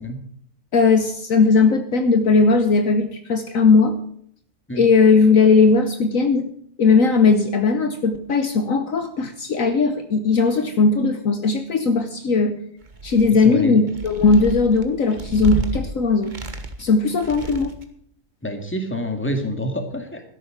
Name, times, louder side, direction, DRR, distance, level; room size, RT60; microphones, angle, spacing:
voice 1, 0.7-4.0 4.7-6.5 6.8-12.6 13.0-16.3 16.8-17.8, left 4 dB, 60° left, 8 dB, 1.4 m, -18 dB
sound 1, 12.8-13.5 13.9-15.8 16.2-16.9 17.2-17.9, right 2 dB, 30° right, 1.4 m, -30 dB
voice 2, 13.4-13.8 18.4-20.2, left 1 dB, 10° left, 5 dB, 2.0 m, -27 dB
13.0 x 11.0 x 4.9 m, 0.64 s
omnidirectional pair, 1.6 m